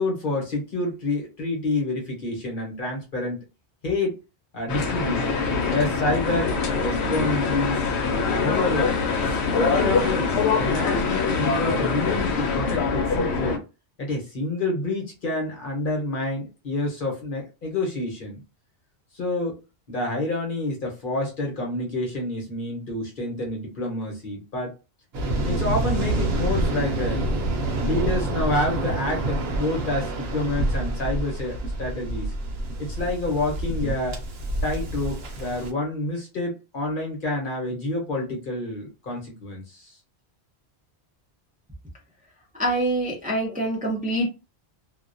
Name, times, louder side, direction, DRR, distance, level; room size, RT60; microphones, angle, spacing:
voice 1, 0.0-3.4 3.8-4.1 4.5-5.4 5.7-6.5 6.8-7.9 8.3-13.6 14.0-18.4 19.1-19.6 19.9-24.7 25.5-27.3 27.8-32.3 32.8-34.2 34.6-40.0, left 2 dB, 55° left, 0.9 m, -28 dB
sound 1, 4.7-13.6, left 4 dB, 80° left, 0.9 m, -24 dB
Waves surf, 25.1-35.7, right 2 dB, 70° right, 0.9 m, -27 dB
voice 2, 42.5-44.3, right 1 dB, 10° right, 0.5 m, -25 dB
2.3 x 2.1 x 2.5 m
omnidirectional pair, 1.1 m